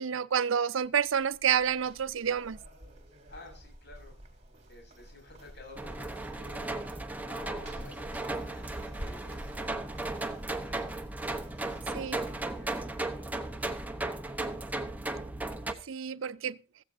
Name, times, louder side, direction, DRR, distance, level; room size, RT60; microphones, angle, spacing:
voice 1, 0.0-2.6 11.9-12.2 15.9-16.6, right 8 dB, 90° right, 0.5 m, -29 dB
sound 1, 0.8-13.0, equal, 35° right, 3.3 m, -50 dB
voice 2, 3.3-4.2 4.7-6.7 7.2-14.5, left 2 dB, 60° left, 7.8 m, -53 dB
sound 2, 5.7-15.7, right 2 dB, 10° right, 0.9 m, -36 dB
16.5 x 14.5 x 2.7 m
head